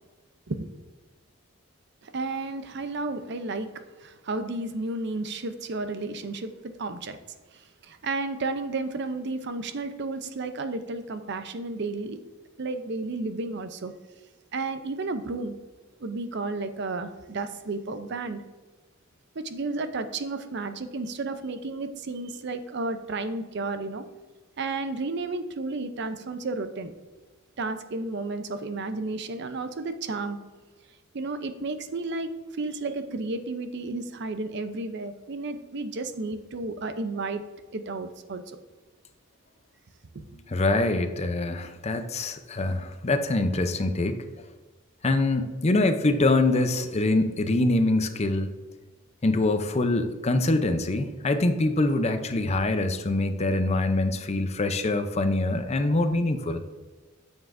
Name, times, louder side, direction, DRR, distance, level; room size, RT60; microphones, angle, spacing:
voice 1, 2.0-3.7 4.0-7.2 7.5-12.2 12.6-13.9 14.5-15.5 16.0-18.4 19.4-24.0 24.6-26.9 27.6-30.4 31.1-37.4 37.7-38.6 40.1-40.3, right 3 dB, 55° right, 10 dB, 0.6 m, -32 dB
voice 2, 40.5-44.2 45.0-48.5 49.2-56.6, left 2 dB, 30° left, 9 dB, 0.5 m, -24 dB
9.2 x 7.2 x 2.6 m, 1.3 s
head